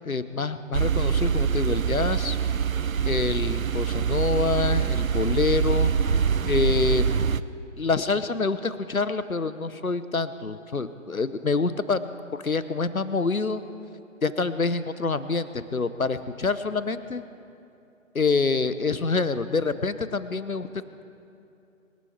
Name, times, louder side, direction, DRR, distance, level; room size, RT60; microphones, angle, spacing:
voice 1, 0.0-2.4 3.0-5.9 6.5-7.3 7.8-12.1 12.3-13.6 14.2-17.2 18.1-20.7, left 4 dB, 85° left, 13 dB, 1.0 m, -26 dB
sound 1, 0.7-7.4, right 7 dB, 75° right, 0.7 m, -24 dB
25.5 x 12.5 x 4.4 m, 2.7 s
figure-of-eight pair, 145°, 41 cm